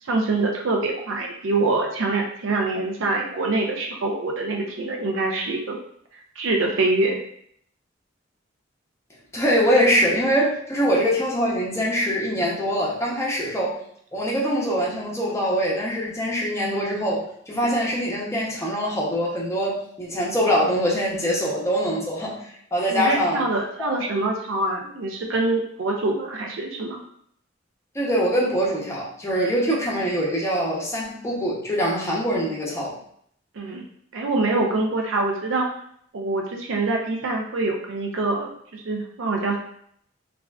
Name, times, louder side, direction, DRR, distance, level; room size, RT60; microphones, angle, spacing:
voice 1, 0.0-5.8 6.4-7.2 22.9-27.0 33.5-33.8 34.1-35.7 36.1-39.6, right 2 dB, 80° right, 1 dB, 0.5 m, -25 dB
voice 2, 9.3-13.8 14.1-22.4 22.7-23.4 23.8-24.0 27.9-32.9, equal, 15° left, -4 dB, 0.7 m, -23 dB
3.2 x 2.4 x 2.3 m, 0.66 s
head